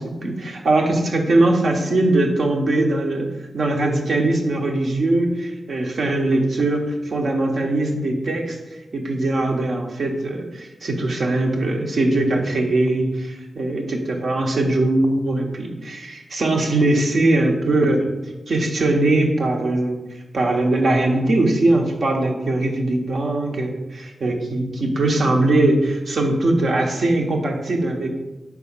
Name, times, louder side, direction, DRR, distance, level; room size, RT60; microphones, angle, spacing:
voice 1, 0.0-8.6 8.9-18.2 18.5-20.0 20.3-28.1, right 2 dB, 65° right, 2 dB, 1.1 m, -21 dB
4.9 x 4.1 x 5.6 m, 1.1 s
cardioid pair, 60°, 0 cm